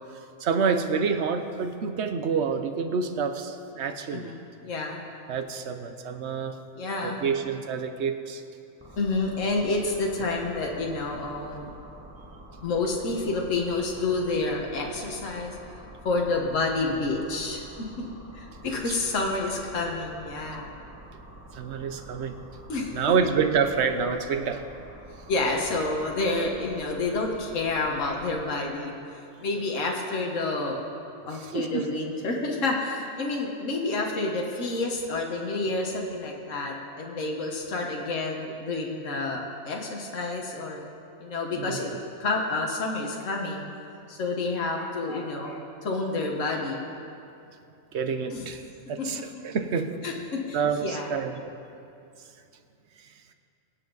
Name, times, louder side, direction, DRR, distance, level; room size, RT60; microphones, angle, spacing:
voice 1, 0.4-4.3 5.3-6.5 7.0-8.4 21.6-22.4 22.9-24.6 31.5-31.8 41.6-41.8 47.9-48.6 48.9-49.9 50.5-51.5, right 6 dB, 65° right, 8 dB, 1.0 m, -27 dB
voice 2, 4.1-5.0 6.8-7.2 9.0-11.7 12.6-15.6 16.0-18.1 18.3-20.7 22.7-23.0 25.3-28.9 29.4-30.8 31.3-40.8 41.2-41.9 42.2-43.6 44.1-46.8 48.3-48.5 49.0-49.2 50.0-51.3, left 3 dB, 75° left, 0 dB, 1.7 m, -29 dB
sound 1, 8.8-28.4, right 1 dB, 10° right, 2.1 m, -47 dB
23.0 x 8.0 x 3.9 m, 2.6 s
omnidirectional pair, 1.3 m